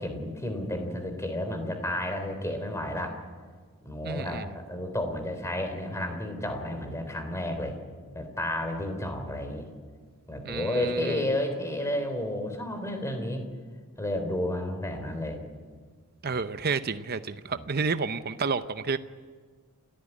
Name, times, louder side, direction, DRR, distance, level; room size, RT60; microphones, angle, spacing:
voice 1, 0.0-3.2 3.8-7.8 8.1-9.7 10.3-13.4 14.0-15.4 17.5-17.7, left 1 dB, 15° left, 6 dB, 3.5 m, -31 dB
voice 2, 4.0-4.5 10.4-11.3 16.2-19.0, right 4 dB, 45° right, 11 dB, 0.7 m, -30 dB
29.5 x 14.0 x 9.9 m, 1.5 s
head